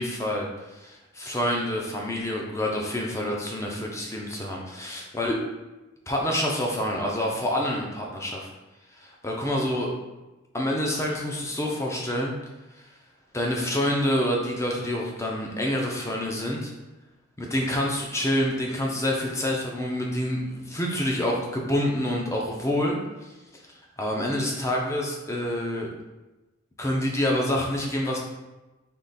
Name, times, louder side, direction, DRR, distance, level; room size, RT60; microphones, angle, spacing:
voice 1, 0.0-5.4 6.1-8.5 9.0-9.9 10.5-12.4 12.7-12.8 13.3-16.7 17.4-23.3 24.0-25.9 26.8-28.2, left 1 dB, 15° left, -1 dB, 0.6 m, -27 dB
3.7 x 3.0 x 4.1 m, 1.1 s
head